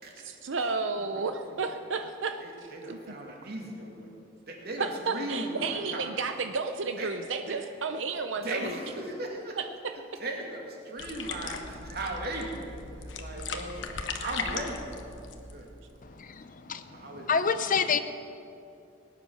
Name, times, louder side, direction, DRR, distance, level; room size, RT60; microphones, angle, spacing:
voice 1, 0.2-3.0 4.8-8.8 9.6-9.7, right 4 dB, 80° right, 7 dB, 0.7 m, -32 dB
voice 2, 0.9-1.8 2.4-4.1 4.5-6.3 7.0-7.1 7.5-7.6 8.4-9.6 10.2-14.8 15.5-16.4 16.6-17.3, right 1 dB, 55° right, 0 dB, 2.7 m, -38 dB
sound 1, 11.0-16.0, left 4 dB, 70° left, 1.1 m, -38 dB
voice 3, 16.0-18.0, left 6 dB, 45° left, 10 dB, 0.7 m, -29 dB
19.0 x 9.4 x 6.6 m, 2.6 s
head